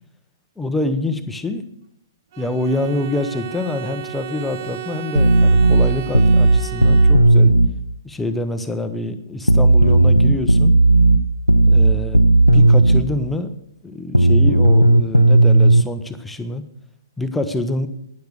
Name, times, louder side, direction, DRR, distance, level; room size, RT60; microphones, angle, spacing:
voice 1, 0.6-1.6 2.4-7.5 8.0-10.8 11.7-12.3 12.5-13.5 13.8-16.6 17.2-17.9, left 2 dB, 5° left, 9 dB, 0.9 m, -26 dB
Bowed string instrument, 2.3-7.6, right 11 dB, 40° right, 0.9 m, -34 dB
sound 1, 5.1-7.7 9.5-13.1 14.1-15.8, right 2 dB, 90° left, 0.7 m, -13 dB
12.0 x 10.5 x 6.3 m, 0.76 s
figure-of-eight pair, 125°, 2 cm